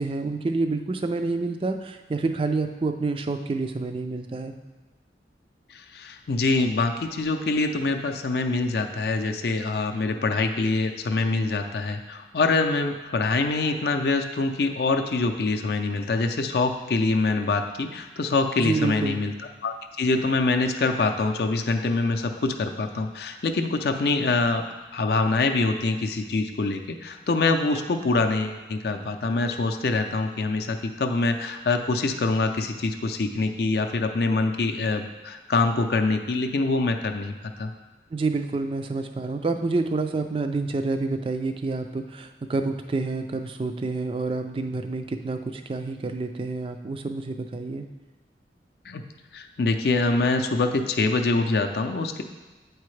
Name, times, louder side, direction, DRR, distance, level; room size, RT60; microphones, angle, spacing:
voice 1, 0.0-4.5 18.6-19.2 38.1-47.9, right 3 dB, 30° right, 7 dB, 0.3 m, -28 dB
voice 2, 5.7-19.3 19.6-24.6 24.9-37.3 37.6-37.7 48.9-49.0 49.3-52.2, left 3 dB, 65° left, 5 dB, 0.4 m, -25 dB
8.3 x 4.6 x 3.2 m, 1.2 s
head